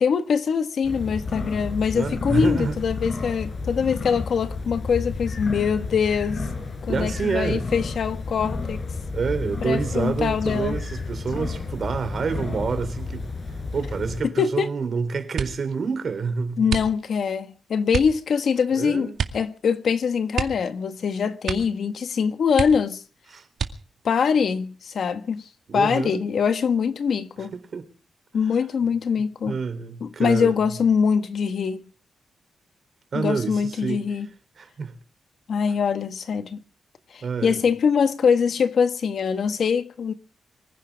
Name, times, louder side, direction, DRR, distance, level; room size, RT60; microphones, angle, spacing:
voice 1, 0.0-6.4 6.9-8.8 9.6-10.8 14.2-14.7 16.6-23.0 24.0-27.5 28.3-29.6 30.0-31.8 33.1-34.3 35.5-36.6 37.1-40.1, left 6 dB, 65° left, 1.6 m, -23 dB
sound 1, 0.8-14.2, left 3 dB, 40° left, 4.3 m, -31 dB
voice 2, 1.9-2.7 6.9-7.7 9.1-13.3 13.7-16.6 18.8-19.2 23.3-23.5 25.7-26.2 27.5-27.9 29.5-30.6 33.1-34.1 34.6-34.9 37.2-37.6, right 5 dB, 50° right, 3.6 m, -28 dB
sound 2, 15.3-15.8 16.6-17.3 17.9-18.2 19.1-19.5 19.8-19.9 20.3-21.1 21.4-21.8 22.1-22.2 22.5-23.1 23.5-24.1 24.8-25.4 25.8-26.2, right 7 dB, 75° right, 2.1 m, -30 dB
24.5 x 15.5 x 3.6 m
wide cardioid pair, 130°, 0 cm